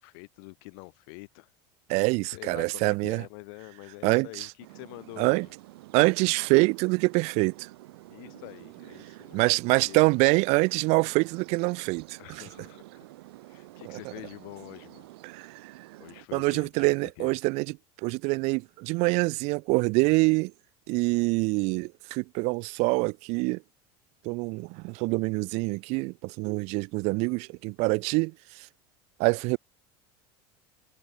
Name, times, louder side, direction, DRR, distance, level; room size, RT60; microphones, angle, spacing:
voice 1, 0.0-1.5 2.3-5.5 8.1-9.6 9.9-10.1 12.2-13.0 13.5-15.1 16.0-17.4, left 36 dB, 70° left, 1.9 m, -46 dB
voice 2, 1.9-3.2 4.0-4.5 5.2-5.5 5.9-7.7 9.3-12.4 13.8-14.0 15.2-15.7 16.3-17.7 18.0-20.5 20.9-23.6 24.2-28.7 29.2-29.6, right 27 dB, 60° right, 0.5 m, -25 dB
sound 1, 4.6-16.3, right 19 dB, 90° right, 0.8 m, -49 dB
supercardioid pair, 130°, 13 cm